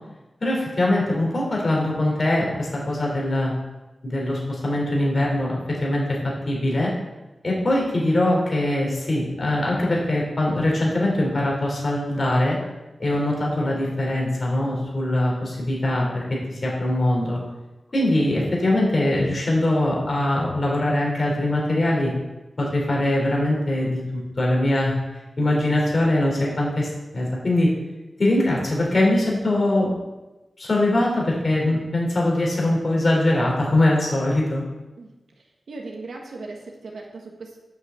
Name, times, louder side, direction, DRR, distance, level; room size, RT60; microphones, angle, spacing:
voice 1, 0.4-3.5 4.0-6.2 6.5-6.9 7.4-12.6 13.0-16.2 16.5-17.4 17.9-22.1 22.6-25.0 25.4-27.7 28.2-29.9 30.6-34.6, left 1 dB, 45° left, -3 dB, 3.8 m, -22 dB
voice 2, 35.7-37.6, right 3 dB, 90° right, 0 dB, 1.5 m, -37 dB
7.9 x 6.6 x 7.7 m, 1.1 s
wide cardioid pair, 120°, 0 cm